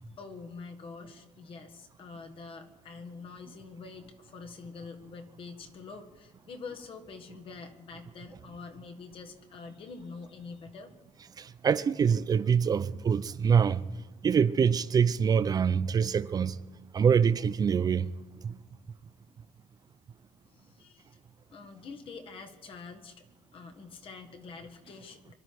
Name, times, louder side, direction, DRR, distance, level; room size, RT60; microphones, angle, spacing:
voice 1, 0.2-10.9 20.4-21.2 21.5-23.3 23.5-25.3, left 4 dB, 40° left, 1.5 m, -46 dB
voice 2, 11.4-13.9 14.2-16.6 16.9-18.1 18.4-18.5, right 7 dB, 30° right, 0.4 m, -25 dB
24.0 x 12.0 x 4.7 m
cardioid pair, 145°, 14 cm